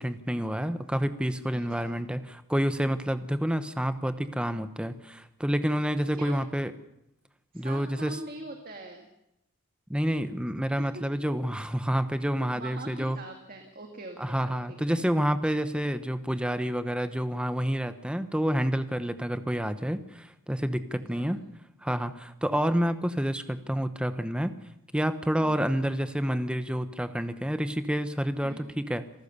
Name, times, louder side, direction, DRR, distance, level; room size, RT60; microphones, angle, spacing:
voice 1, 0.0-6.7 7.5-8.2 9.9-13.2 14.2-21.4 21.8-24.5 24.9-29.0, equal, 5° right, 10 dB, 0.9 m, -28 dB
voice 2, 1.5-2.0 6.1-6.4 7.5-9.1 10.8-11.1 12.5-15.0 21.1-21.2 25.4-25.7 28.4-28.8, right 2 dB, 45° right, 3 dB, 2.0 m, -43 dB
27.0 x 14.0 x 6.9 m, 0.85 s
head